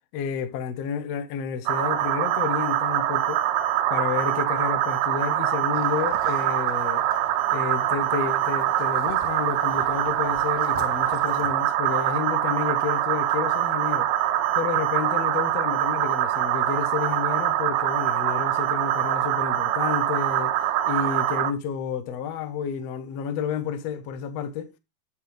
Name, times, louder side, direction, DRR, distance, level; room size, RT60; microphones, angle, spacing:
voice 1, 0.1-3.4 3.9-7.1 7.5-14.2 14.5-20.5 20.9-24.7, left 7 dB, 70° left, 1.5 m, -30 dB
sound 1, 1.7-21.5, right 12 dB, 75° right, 2.9 m, -24 dB
sound 2, 5.7-11.5, right 3 dB, 55° right, 0.8 m, -42 dB
9.0 x 8.6 x 3.2 m
omnidirectional pair, 4.7 m